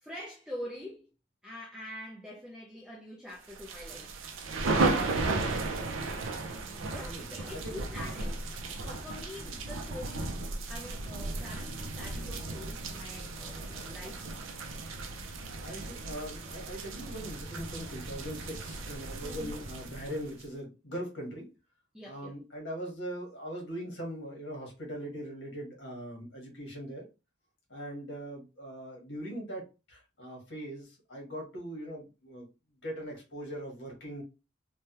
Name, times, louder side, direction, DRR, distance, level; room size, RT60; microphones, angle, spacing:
voice 1, 0.0-1.1 1.4-4.2 6.5-14.2 19.2-19.6 21.9-22.4, left 1 dB, 5° right, 0.4 m, -45 dB
sound 1, 3.5-20.4, right 3 dB, 70° right, 0.5 m, -35 dB
voice 2, 6.8-7.8 9.1-9.5 15.6-21.5 22.0-27.0 27.7-32.5 32.8-34.2, equal, 55° left, 1.3 m, -41 dB
3.2 x 2.2 x 2.8 m
head